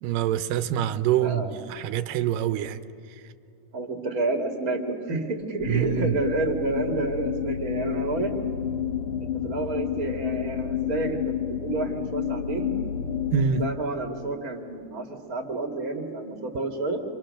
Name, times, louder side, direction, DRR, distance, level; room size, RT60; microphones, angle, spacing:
voice 1, 0.0-1.4 1.7-2.8 5.7-6.1 13.3-13.6, right 10 dB, 85° right, 11 dB, 2.4 m, -25 dB
voice 2, 1.2-1.6 3.7-8.3 9.4-12.7 13.6-17.0, right 2 dB, 30° right, 3 dB, 2.2 m, -29 dB
sound 1, 5.6-13.7, left 9 dB, 55° left, 1.7 m, -30 dB
29.5 x 25.0 x 6.5 m, 2.6 s
omnidirectional pair, 3.8 m